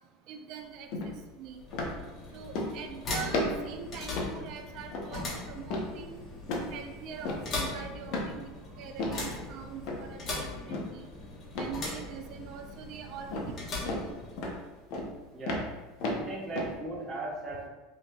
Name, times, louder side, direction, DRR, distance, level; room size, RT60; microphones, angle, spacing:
voice 1, 0.3-1.6 2.3-6.2 6.7-8.5 8.8-11.1 11.6-14.1, right 7 dB, 55° right, 5 dB, 0.5 m, -43 dB
sound 1, 0.9-1.1 1.7-2.0 2.5-2.9 3.3-3.7 4.2-4.4 4.9-5.1 5.7-5.9 6.5-6.8 7.2-7.5 8.1-8.3 9.0-9.2 9.8-10.1 10.7-11.0 11.5-11.8 13.3-13.5 13.9-14.0 14.4-14.6 14.9-15.1 15.5-16.7, left 2 dB, 60° left, 0.7 m, -33 dB
sound 2, 1.4-14.7, left 2 dB, 35° left, 1.1 m, -40 dB
voice 2, 16.1-17.7, right 2 dB, 25° right, -3 dB, 1.2 m, -37 dB
5.1 x 2.9 x 2.3 m, 1.1 s
supercardioid pair, 120°, 0 cm